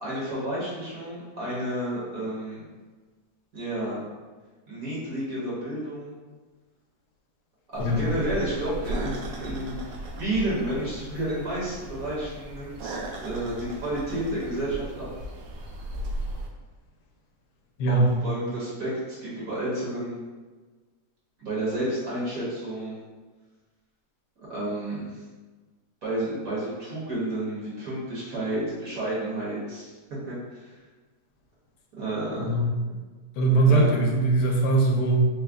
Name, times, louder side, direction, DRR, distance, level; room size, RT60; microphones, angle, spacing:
voice 1, 0.0-2.6 3.5-4.0 4.7-6.2 7.7-15.1 17.9-20.2 21.4-23.0 24.4-25.2 26.0-30.7 32.0-32.6 33.7-34.0, right 1 dB, 55° right, -8 dB, 1.7 m, -31 dB
sound 1, 7.7-16.5, right 1 dB, 90° right, 1.3 m, -36 dB
voice 2, 33.4-35.3, right 2 dB, 80° left, 0 dB, 1.2 m, -21 dB
3.9 x 2.2 x 3.4 m, 1.3 s
omnidirectional pair, 1.8 m